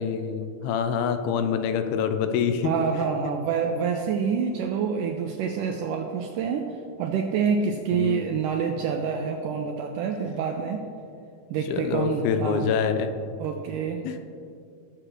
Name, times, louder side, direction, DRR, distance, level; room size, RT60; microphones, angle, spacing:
voice 1, 0.0-2.7 7.9-8.2 11.7-13.1 14.0-14.2, left 7 dB, 85° left, 8 dB, 2.6 m, -26 dB
voice 2, 2.6-6.7 7.0-10.8 11.5-12.7 13.4-14.0, right 6 dB, 90° right, 3 dB, 1.9 m, -27 dB
18.0 x 7.6 x 3.1 m, 2.4 s
omnidirectional pair, 4.3 m